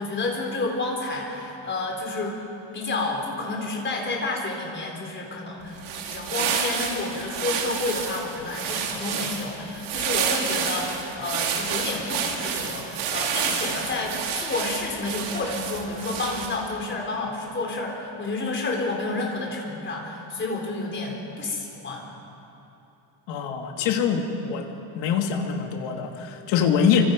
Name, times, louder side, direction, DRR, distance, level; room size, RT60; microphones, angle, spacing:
voice 1, 0.0-2.4 2.7-22.0, left 3 dB, 25° left, 0 dB, 4.1 m, -30 dB
sound 1, 5.7-16.7, right 7 dB, 65° right, 3.0 m, -29 dB
voice 2, 23.3-24.7 24.9-27.0, left 7 dB, 60° left, 2 dB, 2.8 m, -24 dB
28.5 x 25.5 x 5.4 m, 2.9 s
cardioid pair, 170°, 49 cm